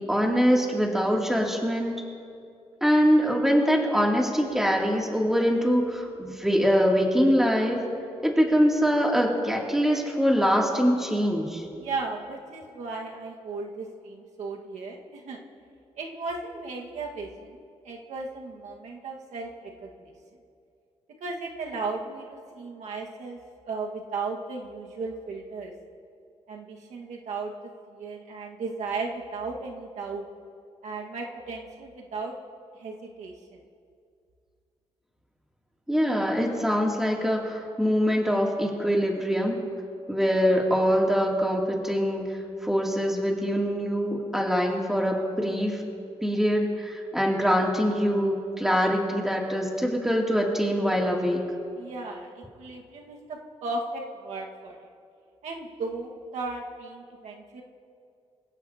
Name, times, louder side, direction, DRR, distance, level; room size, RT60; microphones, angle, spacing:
voice 1, 0.0-2.0 2.8-7.8 8.2-11.6 35.9-39.6 40.1-42.2 42.6-45.8 46.2-51.4, equal, 5° right, -2 dB, 2.8 m, -23 dB
voice 2, 11.7-15.4 15.9-17.6 17.8-20.1 21.2-23.4 23.6-25.7 26.5-27.5 27.9-30.3 30.8-32.3 32.8-33.6 51.7-54.9 55.4-57.6, right 3 dB, 90° right, 0 dB, 1.8 m, -36 dB
26.0 x 16.5 x 2.9 m, 2.4 s
cardioid pair, 95°, 11 cm